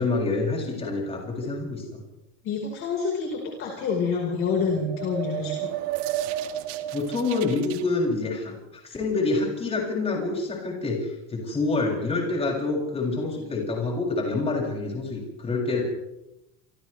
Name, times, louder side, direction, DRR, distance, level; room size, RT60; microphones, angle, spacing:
voice 1, 0.0-2.0 6.9-15.8, left 3 dB, 15° left, -1 dB, 7.6 m, -27 dB
voice 2, 2.4-5.8, left 5 dB, 35° left, -1 dB, 5.0 m, -27 dB
sound 1, 4.5-7.8, right 12 dB, 75° right, 1.9 m, -32 dB
29.5 x 26.5 x 3.5 m, 0.91 s
cardioid pair, 175°, 37 cm